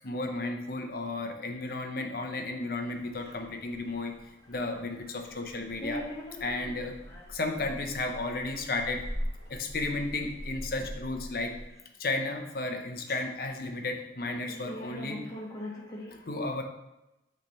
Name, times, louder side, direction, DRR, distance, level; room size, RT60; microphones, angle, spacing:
voice 1, 0.0-4.2 4.5-6.0 6.4-6.9 7.3-9.0 9.5-11.5 12.0-15.2 16.1-16.6, left 2 dB, 55° left, 4 dB, 0.8 m, -33 dB
sound 1, 2.9-11.7, equal, 65° right, 1.2 m, -43 dB
voice 2, 5.8-6.6 7.1-7.2 14.3-16.1, left 1 dB, 20° left, -5 dB, 1.6 m, -40 dB
9.3 x 3.4 x 4.1 m, 0.96 s
head